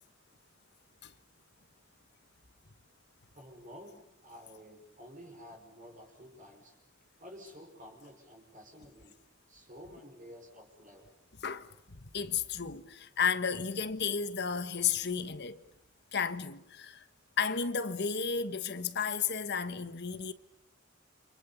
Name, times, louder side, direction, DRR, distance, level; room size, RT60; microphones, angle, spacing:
voice 1, 3.3-6.8 7.2-9.1 9.5-11.1, equal, 40° right, 5.8 m, -51 dB
voice 2, 11.9-15.6 16.1-17.0 17.4-20.3, left 6 dB, 60° left, 1.4 m, -33 dB
30.0 x 27.0 x 7.2 m
head